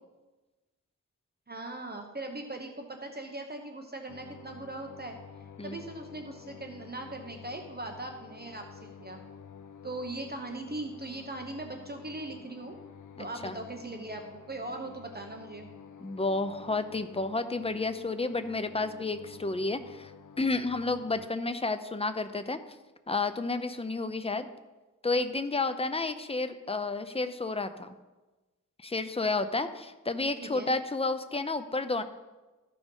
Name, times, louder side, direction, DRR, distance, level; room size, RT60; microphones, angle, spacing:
voice 1, 1.5-5.2 5.6-9.2 9.8-12.8 13.2-15.7 25.7-25.8 30.4-30.7, right 2 dB, 30° right, 4 dB, 0.9 m, -40 dB
sound 1, 4.1-21.3, left 7 dB, 70° left, 0.7 m, -50 dB
voice 2, 13.2-13.6 16.0-20.1 20.4-22.6 23.1-24.5 25.0-27.9 28.8-32.0, left 3 dB, 20° left, 9 dB, 0.6 m, -31 dB
13.5 x 5.1 x 5.5 m, 1.2 s
wide cardioid pair, 115°, 32 cm